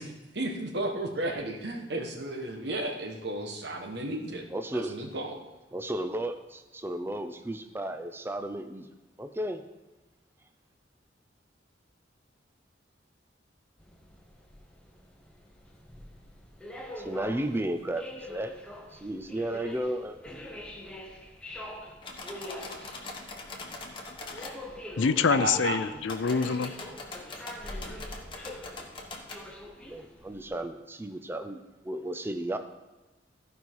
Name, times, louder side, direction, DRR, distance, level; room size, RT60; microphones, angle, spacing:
voice 1, 0.0-4.5 4.7-5.4 25.3-25.8, right 1 dB, 60° right, 3 dB, 1.3 m, -33 dB
voice 2, 4.5-4.9 5.7-8.9 9.2-9.6 17.0-18.5 18.9-20.2 29.9-32.6, right 1 dB, 10° right, 7 dB, 0.5 m, -34 dB
sound 1, 13.8-30.5, left 1 dB, 5° left, 0.9 m, -44 dB
sound 2, 22.0-24.5 26.0-29.4, left 3 dB, 25° left, 1.2 m, -42 dB
voice 3, 25.0-26.7, left 5 dB, 90° left, 13 dB, 0.5 m, -26 dB
14.5 x 5.4 x 4.7 m, 1.2 s
head